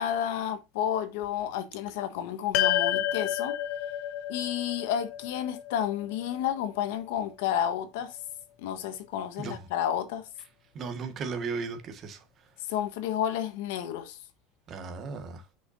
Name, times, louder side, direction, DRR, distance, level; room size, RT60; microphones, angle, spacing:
voice 1, 0.0-3.5 4.3-8.2 8.6-10.3 12.7-14.2, left 10 dB, 80° left, 1.3 m, -31 dB
sound 1, 2.5-7.0, left 12 dB, 55° left, 0.8 m, -30 dB
voice 2, 10.7-12.2 14.7-15.4, right 4 dB, 35° right, 1.6 m, -36 dB
6.9 x 5.7 x 2.6 m
cardioid pair, 155°, 0 cm